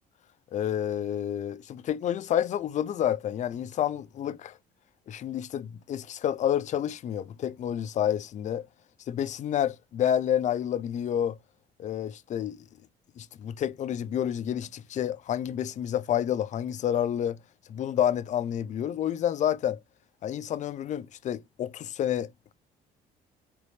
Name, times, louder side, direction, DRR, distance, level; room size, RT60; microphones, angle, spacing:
voice 1, 0.5-4.6 5.1-8.6 9.1-11.4 11.8-12.6 13.2-17.4 17.7-19.8 20.2-22.5, left 10 dB, 45° left, 0.5 m, -29 dB
4.0 x 3.3 x 3.2 m
cardioid pair, 110°, 17 cm